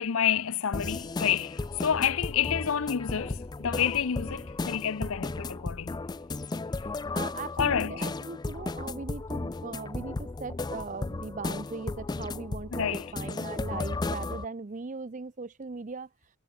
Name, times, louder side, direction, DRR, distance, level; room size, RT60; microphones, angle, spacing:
voice 1, 0.0-6.0 7.6-8.1 12.7-13.1, left 8 dB, 70° left, 0.6 m, -29 dB
sound 1, 0.7-14.4, left 3 dB, 20° left, 0.3 m, -34 dB
voice 2, 7.1-16.1, right 4 dB, 35° right, 0.6 m, -39 dB
head